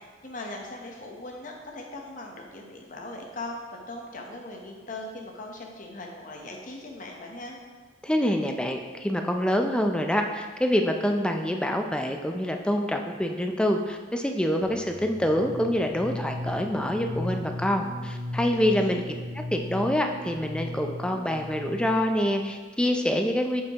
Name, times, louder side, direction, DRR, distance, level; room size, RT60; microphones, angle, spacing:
voice 1, 0.2-7.6 18.5-19.0, left 2 dB, 45° left, 1 dB, 0.9 m, -39 dB
voice 2, 8.0-19.0 19.3-23.6, equal, 5° left, 4 dB, 0.4 m, -26 dB
sound 1, 14.6-22.3, left 1 dB, 30° right, 1.2 m, -36 dB
7.8 x 5.4 x 2.9 m, 1.4 s
head